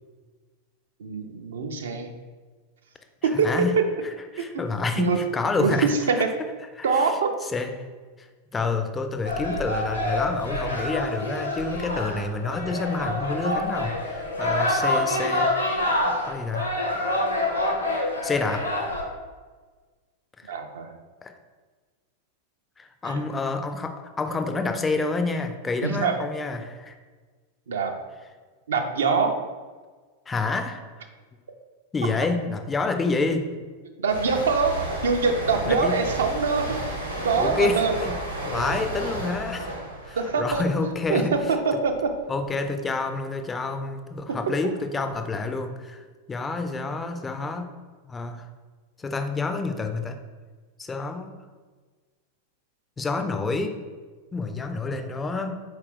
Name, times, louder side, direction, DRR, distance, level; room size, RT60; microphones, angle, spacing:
voice 1, 1.0-2.1 3.4-3.5 4.4-4.6 5.0-5.2 5.6-5.7 6.8-7.3 20.5-20.9 23.0-23.2 25.8-26.2 27.7-27.9 28.7-29.4 34.0-34.7 35.0-36.8 37.2-37.9 40.2-41.4 41.6-42.1, right 5 dB, 65° right, 4 dB, 0.4 m, -24 dB
voice 2, 3.2-3.7 4.0-5.9 6.4-6.5 6.8-7.1 7.4-7.7 8.2-8.3 8.5-15.5 16.1-16.7 18.2-18.7 20.4-20.5 21.2-21.3 22.8-27.0 30.3-31.1 31.9-33.6 35.7-36.0 37.3-38.2 38.5-41.3 42.3-47.7 48.1-48.5 49.0-50.2 50.8-51.3 53.0-53.8 54.3-55.6, left 3 dB, 15° left, 7 dB, 0.3 m, -28 dB
sound 1, 9.2-19.0, left 1 dB, 85° left, 0.8 m, -27 dB
sound 2, 34.1-41.5 41.8-42.2, right 1 dB, 85° right, 0.9 m, -32 dB
4.2 x 2.4 x 3.6 m, 1.4 s
figure-of-eight pair, 90°, 0 cm